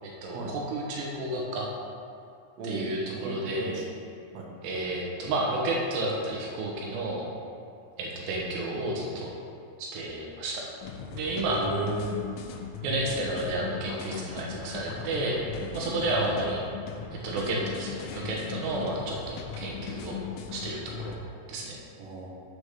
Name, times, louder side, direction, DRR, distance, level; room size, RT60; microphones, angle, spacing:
voice 1, 0.0-1.7 2.6-3.8 4.6-7.3 8.0-9.3 9.8-10.7 11.1-11.6 12.8-15.4 15.7-16.6 17.2-20.2 20.5-21.2 21.5-21.8, right 2 dB, 90° right, -2 dB, 3.4 m, -31 dB
voice 2, 2.6-2.9 3.2-3.9 4.3-4.5 11.5-12.2 16.1-16.3 22.0-22.3, right 2 dB, 65° right, -2 dB, 1.7 m, -34 dB
sound 1, 10.8-21.2, left 6 dB, 80° left, 2.6 m, -38 dB
7.2 x 4.9 x 6.5 m, 2.4 s
omnidirectional pair, 4.6 m